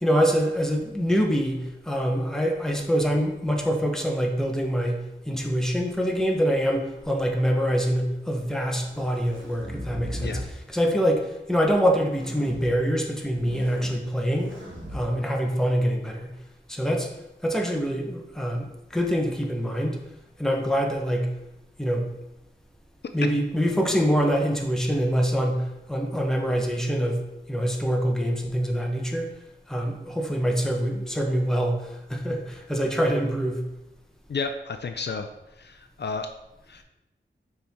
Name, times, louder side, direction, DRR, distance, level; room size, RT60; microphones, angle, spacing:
voice 1, 0.0-10.4 10.7-14.6 14.9-16.3 16.7-17.1 17.4-20.0 20.4-21.3 21.8-22.1 23.1-29.4 29.7-33.6, equal, 5° left, 1 dB, 1.0 m, -25 dB
sound 1, 7.0-7.7 8.6-10.5 12.0-12.7 13.2-13.9 14.3-15.0, equal, 90° right, 1.6 m, -38 dB
voice 2, 34.3-35.3 35.6-36.3 36.7-36.8, left 4 dB, 60° left, 7 dB, 0.5 m, -32 dB
6.7 x 4.4 x 3.6 m, 0.95 s
wide cardioid pair, 80°, 20 cm